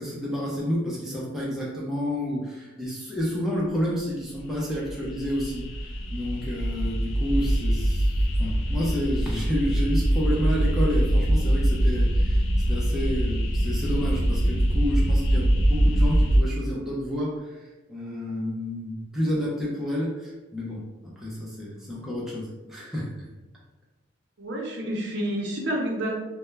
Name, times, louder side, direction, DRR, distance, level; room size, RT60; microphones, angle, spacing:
voice 1, 0.0-8.1 8.4-12.4 12.7-17.4 17.9-23.1, equal, ahead, -6 dB, 0.4 m, -30 dB
sound 1, 4.4-16.4, right 1 dB, 65° left, 0.4 m, -23 dB
voice 2, 24.4-26.1, right 1 dB, 55° right, -1 dB, 0.5 m, -29 dB
2.2 x 2.0 x 3.1 m, 1.1 s
head